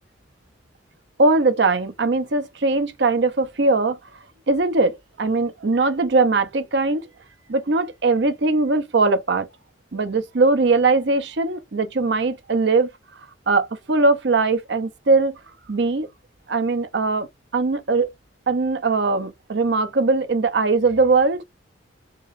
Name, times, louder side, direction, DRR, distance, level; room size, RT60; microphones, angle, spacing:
voice 1, 1.2-4.0 4.5-7.1 7.5-9.5 9.9-12.9 13.5-15.4 15.7-16.1 16.5-17.3 17.5-18.1 18.5-21.4, right 3 dB, 65° right, 0.6 m, -20 dB
4.5 x 3.0 x 2.4 m
head